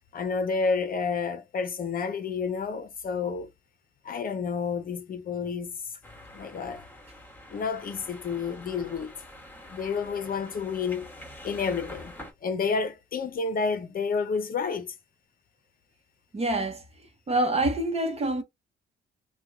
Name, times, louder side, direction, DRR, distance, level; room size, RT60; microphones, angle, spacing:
voice 1, 0.1-3.5 4.0-5.8 6.3-6.8 7.5-9.1 9.7-11.1 11.4-12.1 12.4-14.9, left 5 dB, 45° left, 0.7 m, -30 dB
sound 1, 6.0-12.3, left 1 dB, 10° left, 1.2 m, -46 dB
voice 2, 16.3-16.8 17.3-18.4, right 2 dB, 30° right, 1.0 m, -26 dB
2.8 x 2.3 x 3.5 m
cardioid pair, 90°, 20 cm